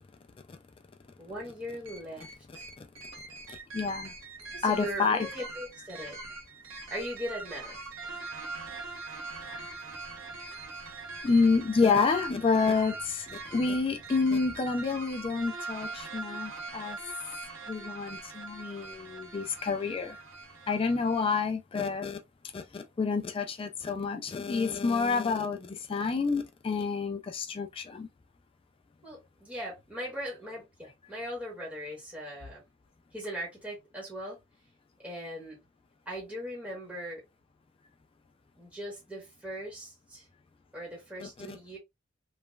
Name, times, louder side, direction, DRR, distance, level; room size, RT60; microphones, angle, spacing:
voice 1, 1.2-2.6 4.5-6.2 6.9-7.8 29.0-32.6 33.1-34.4 35.0-35.6 36.1-37.2 38.6-40.3 40.7-41.8, equal, 5° right, 1.1 m, -39 dB
sound 1, 1.9-21.3, right 3 dB, 70° right, 0.9 m, -42 dB
voice 2, 3.5-4.1 4.6-5.3 9.4-9.6 11.2-13.3 13.5-17.0 17.7-20.2 20.7-22.2 22.5-28.1 41.2-41.3, left 4 dB, 25° left, 0.3 m, -28 dB
3.1 x 2.2 x 2.3 m
head